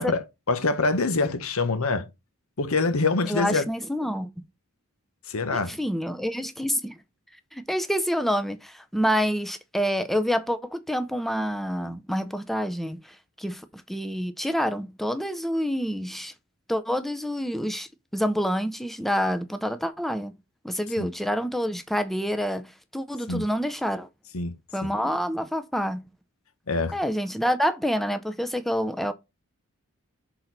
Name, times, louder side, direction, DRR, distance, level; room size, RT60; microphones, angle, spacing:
voice 1, 0.0-2.1 2.6-3.6 5.3-5.8 21.0-21.1 23.3-23.5 24.3-24.5 24.8-24.9 26.7-27.0, left 3 dB, 75° left, 1.0 m, -25 dB
voice 2, 3.2-4.4 5.5-7.0 7.5-16.3 16.7-20.4 20.6-24.1 24.7-26.1 26.9-29.1, equal, ahead, 0.5 m, -27 dB
6.3 x 4.0 x 3.9 m
head